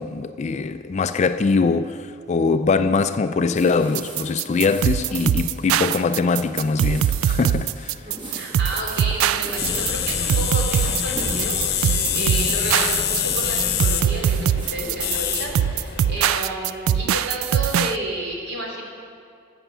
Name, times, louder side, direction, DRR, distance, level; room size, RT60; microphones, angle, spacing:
voice 1, 0.0-7.9, left 4 dB, 35° left, 0.3 m, -22 dB
sound 1, 3.6-17.2, right 1 dB, 25° right, 1.3 m, -41 dB
sound 2, 3.9-18.0, right 10 dB, 90° right, 0.3 m, -22 dB
voice 2, 8.0-18.8, right 1 dB, 55° right, 2.9 m, -31 dB
sound 3, 9.6-16.2, left 8 dB, 50° left, 0.8 m, -25 dB
13.5 x 7.0 x 7.5 m
head